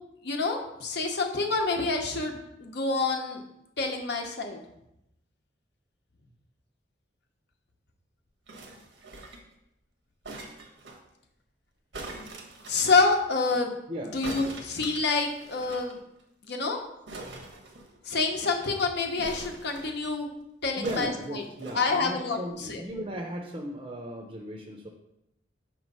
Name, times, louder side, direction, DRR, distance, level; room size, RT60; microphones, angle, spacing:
voice 1, 0.2-3.4 3.8-4.6 12.7-13.7 14.1-16.0 16.4-16.8 18.0-20.3 20.6-21.4 21.7-22.8, left 3 dB, 65° left, 3 dB, 0.8 m, -27 dB
sound 1, 8.5-9.5 10.2-11.0 11.9-13.0 14.2-15.9 16.2-16.3 16.5-16.6 17.1-18.2 19.2-20.1 20.8-21.8 22.5-22.6, right 2 dB, 85° right, 1.1 m, -42 dB
voice 2, 20.8-24.9, equal, 30° right, 1 dB, 0.6 m, -36 dB
5.9 x 3.1 x 5.4 m, 0.85 s
head